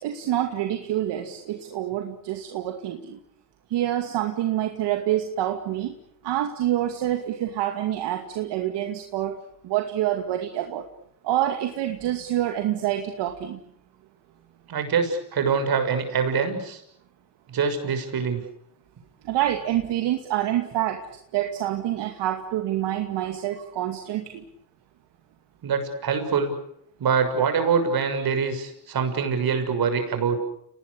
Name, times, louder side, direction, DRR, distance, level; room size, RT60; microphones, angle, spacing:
voice 1, 0.0-3.2 3.7-5.9 6.2-9.4 9.6-10.8 11.2-13.6 19.2-24.4, right 12 dB, 80° right, 5 dB, 2.4 m, -27 dB
voice 2, 14.7-16.8 17.5-18.4 25.6-26.5 27.0-30.4, right 6 dB, 60° right, 7 dB, 6.8 m, -24 dB
29.5 x 20.0 x 8.5 m, 0.75 s
supercardioid pair, 75°, 41 cm